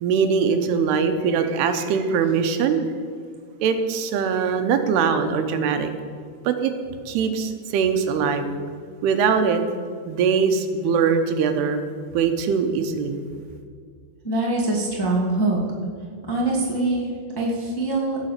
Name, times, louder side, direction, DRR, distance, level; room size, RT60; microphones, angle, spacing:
voice 1, 0.0-2.8 3.6-5.9 6.4-6.7 7.1-8.5 9.0-9.6 10.1-11.8 12.1-13.2, right 6 dB, 85° right, 8 dB, 2.9 m, -22 dB
voice 2, 14.2-15.6 16.3-18.2, right 2 dB, 15° left, -5 dB, 0.9 m, -23 dB
16.5 x 6.2 x 6.6 m, 2.1 s
omnidirectional pair, 4.6 m